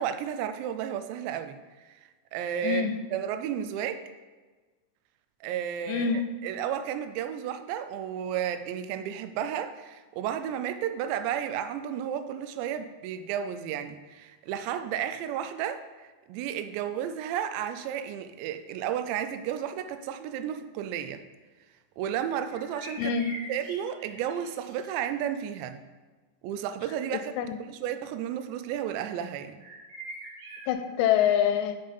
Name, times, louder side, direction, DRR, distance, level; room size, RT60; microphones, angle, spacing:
voice 1, 0.0-1.6 2.3-4.0 5.4-21.2 22.0-23.2 23.5-25.8 26.4-29.5, right 9 dB, 85° right, 9 dB, 2.8 m, -33 dB
voice 2, 2.6-3.0 5.9-6.4 23.0-23.5 27.4-27.6 30.7-31.8, left 8 dB, 85° left, 9 dB, 2.7 m, -26 dB
sound 1, 22.5-24.9 29.6-30.7, right 2 dB, 45° right, 2.2 m, -43 dB
7.1 x 5.5 x 5.2 m, 1.3 s
omnidirectional pair, 5.0 m